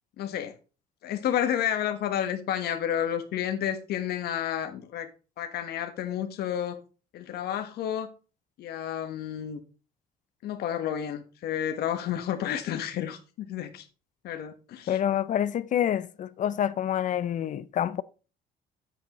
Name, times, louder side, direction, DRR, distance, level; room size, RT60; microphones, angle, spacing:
voice 1, 0.2-0.5 1.0-5.1 5.4-6.8 7.1-8.1 8.6-9.6 10.4-13.9 14.2-15.0, left 10 dB, 70° left, 1.3 m, -31 dB
voice 2, 14.9-18.0, left 10 dB, 50° left, 0.5 m, -27 dB
8.2 x 7.7 x 3.0 m
cardioid pair, 110°, 17 cm